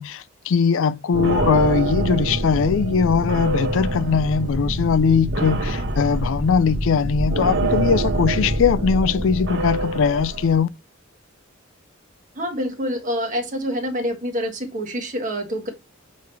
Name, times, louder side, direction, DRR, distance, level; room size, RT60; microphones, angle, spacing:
voice 1, 0.0-10.7, left 5 dB, 70° left, 0.4 m, -20 dB
sound 1, 1.1-10.6, right 1 dB, 60° right, 1.3 m, -25 dB
voice 2, 12.4-15.7, equal, 40° right, 1.5 m, -26 dB
6.9 x 3.2 x 4.7 m
head